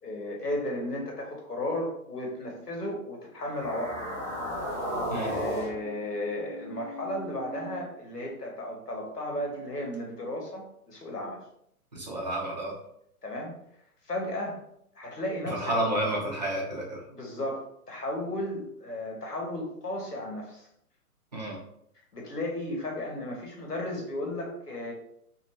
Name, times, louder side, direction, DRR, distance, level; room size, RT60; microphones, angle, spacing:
voice 1, 0.0-4.3 5.2-11.4 13.2-13.5 14.0-14.6 15.0-15.7 17.1-20.7 22.1-24.9, left 1 dB, 90° left, 0 dB, 1.0 m, -34 dB
sound 1, 3.4-7.8, equal, 10° left, 0.6 m, -35 dB
voice 2, 11.9-12.7 15.5-17.0 21.3-21.6, right 1 dB, 30° right, -2 dB, 0.4 m, -30 dB
2.5 x 2.3 x 2.9 m, 0.73 s
figure-of-eight pair, 125°, 46 cm